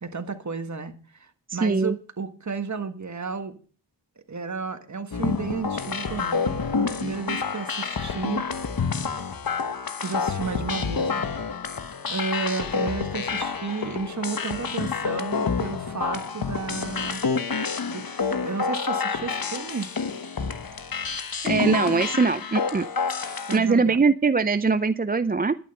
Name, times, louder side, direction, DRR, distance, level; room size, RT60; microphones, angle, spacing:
voice 1, 0.0-3.6 4.3-8.4 10.0-11.3 12.1-17.2 17.9-18.0 18.3-19.9 23.5-24.0, right 4 dB, 40° right, 8 dB, 1.6 m, -32 dB
voice 2, 1.5-2.0 21.4-22.9 23.5-25.6, right 4 dB, 20° right, 13 dB, 0.5 m, -22 dB
sound 1, 5.1-23.6, left 5 dB, 50° left, 1.2 m, -28 dB
11.0 x 9.3 x 5.4 m, 0.40 s
cardioid pair, 50°, 43 cm